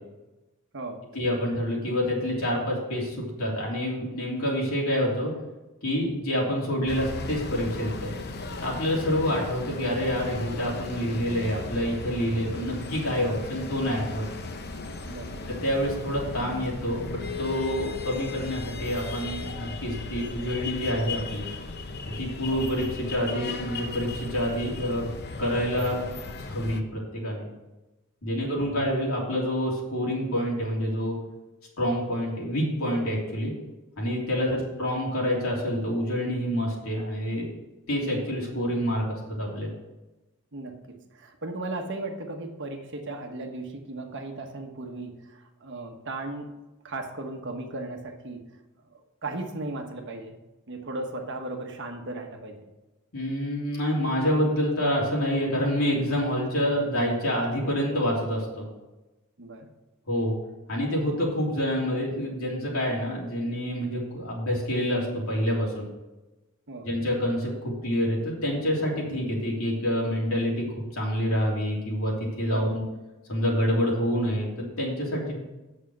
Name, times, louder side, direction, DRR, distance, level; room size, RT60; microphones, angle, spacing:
voice 1, 1.1-5.3 5.8-8.1 8.6-14.3 15.5-21.5 22.1-25.0 25.4-26.0 26.4-27.4 28.2-31.2 31.8-33.5 34.0-37.5 37.9-39.7 53.1-58.6 60.1-60.3 60.7-65.9 66.8-70.7 70.9-72.8 73.3-75.4, equal, 70° left, -3 dB, 3.3 m, -27 dB
sound 1, 6.9-26.8, left 3 dB, 50° left, 0.8 m, -36 dB
voice 2, 15.0-15.4 22.5-22.6 28.2-28.6 34.5-34.6 40.5-46.5 46.8-48.5 48.9-50.4 50.7-52.7 59.4-59.7 66.7-66.9 72.5-72.7, right 2 dB, 55° right, 3 dB, 1.2 m, -36 dB
8.2 x 6.6 x 6.3 m, 1.1 s
head